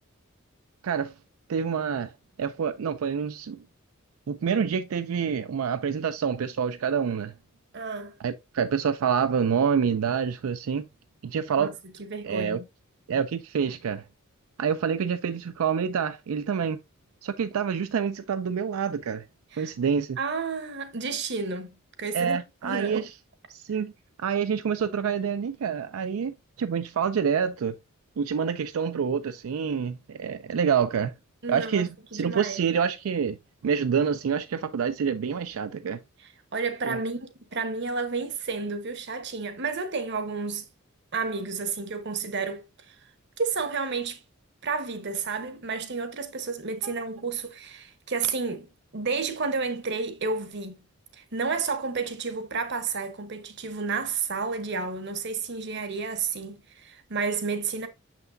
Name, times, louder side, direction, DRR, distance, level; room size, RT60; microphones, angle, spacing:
voice 1, 0.8-1.1 1.5-2.1 2.4-3.6 4.3-7.3 8.2-10.9 11.2-11.7 12.2-12.6 13.1-14.0 14.6-16.8 17.2-19.2 19.6-20.2 22.1-23.1 23.5-23.9 24.2-27.7 28.2-31.1 31.5-33.4 33.6-36.0 36.8-37.0 46.8-46.9, right 7 dB, 80° right, 0.4 m, -27 dB
voice 2, 7.7-8.2 11.6-11.7 12.1-12.6 19.5-19.7 20.2-22.4 22.6-23.1 31.4-32.6 36.5-40.7 41.1-42.9 43.4-44.2 44.6-48.7 48.9-50.8 51.2-57.9, right 4 dB, 55° right, 1.0 m, -31 dB
6.7 x 5.9 x 2.6 m
head